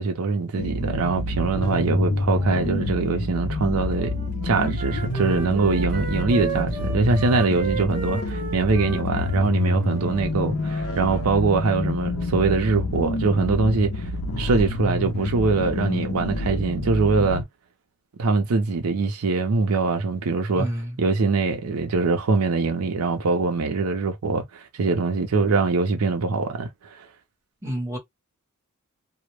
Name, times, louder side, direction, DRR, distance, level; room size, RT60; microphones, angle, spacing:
voice 1, 0.0-4.1 4.4-14.1 14.4-17.4 18.2-20.7 21.0-26.7 27.0-27.1, right 4 dB, 85° right, 0.5 m, -23 dB
sound 1, 0.6-17.4, left 2 dB, 75° left, 0.6 m, -28 dB
Wind instrument woodwind instrument, 3.9-10.3, right 4 dB, 40° right, 0.8 m, -34 dB
voice 2, 20.5-20.9 27.6-28.0, equal, 10° right, 0.9 m, -28 dB
2.1 x 2.0 x 2.9 m
head